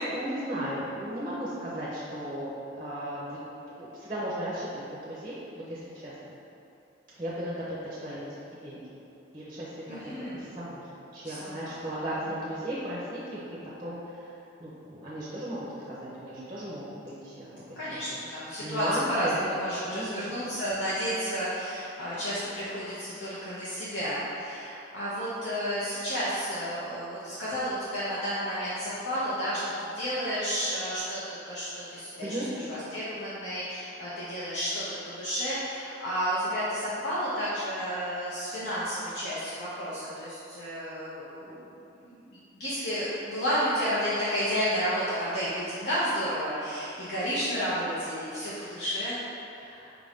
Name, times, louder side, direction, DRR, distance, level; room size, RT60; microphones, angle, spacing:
voice 1, 0.1-3.4 3.8-6.1 7.2-8.3 8.6-8.8 9.3-10.8 11.1-13.5 13.8-14.3 14.6-16.8 17.2-17.6 18.6-19.4 19.8-20.4 32.2-32.5 49.6-50.0, right 1 dB, 25° right, -8 dB, 0.6 m, -35 dB
voice 2, 9.9-10.6 11.2-11.8 17.8-41.6 42.0-49.2, equal, 65° left, -11 dB, 0.7 m, -31 dB
4.7 x 2.6 x 3.5 m, 2.8 s
head